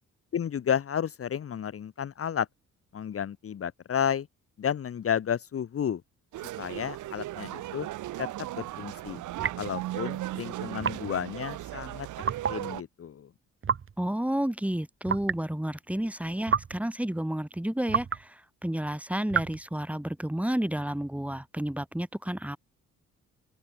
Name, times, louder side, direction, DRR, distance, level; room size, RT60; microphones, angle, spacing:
voice 1, 0.3-2.5 2.9-4.3 4.6-6.0 6.6-7.9 8.2-8.3 8.5-9.2 9.6-12.1 12.5-13.3, left 8 dB, 50° left, 1.5 m, -31 dB
sound 1, 6.3-12.8, right 15 dB, 80° right, 1.2 m, -37 dB
sound 2, 9.4-9.8 10.8-11.2 12.2-12.6 13.6-13.9 15.0-15.4 16.5-16.8 17.9-18.2 19.3-19.6, right 7 dB, 45° right, 3.1 m, -29 dB
voice 2, 14.0-22.6, right 1 dB, 5° right, 4.9 m, -31 dB
open air
cardioid pair, 90°, 30 cm